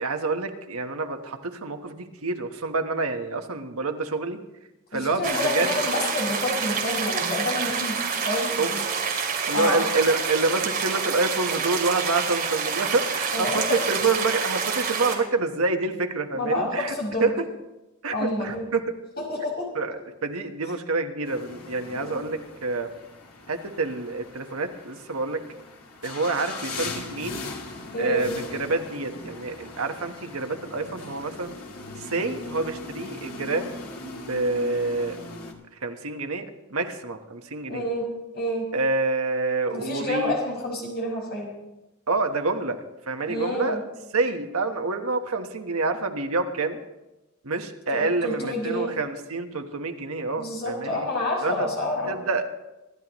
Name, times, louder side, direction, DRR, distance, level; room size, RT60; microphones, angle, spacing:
voice 1, 0.0-4.4 4.9-6.0 8.6-8.7 9.5-17.3 18.0-18.8 19.7-22.9 23.5-25.4 26.0-27.4 28.0-31.5 32.0-33.7 34.0-35.2 35.8-37.8 38.7-40.3 42.1-43.8 44.1-46.8 47.4-51.1 51.4-51.7 52.1-52.5, right 3 dB, 80° right, 5 dB, 1.3 m, -27 dB
voice 2, 4.9-8.0 8.2-8.9 9.5-9.8 13.3-13.8 16.4-17.3 18.1-18.7 19.2-19.7 20.6-20.7 21.9-22.1 27.9-28.3 37.7-38.1 38.3-38.7 39.7-41.5 43.3-43.8 47.9-48.9 50.4-52.1, left 1 dB, 50° left, -2 dB, 5.4 m, -28 dB
sound 1, 5.2-15.1, right 5 dB, 45° right, 2.6 m, -28 dB
sound 2, 21.3-35.5, left 3 dB, 90° left, 2.1 m, -39 dB
25.5 x 12.0 x 3.1 m, 1.0 s
head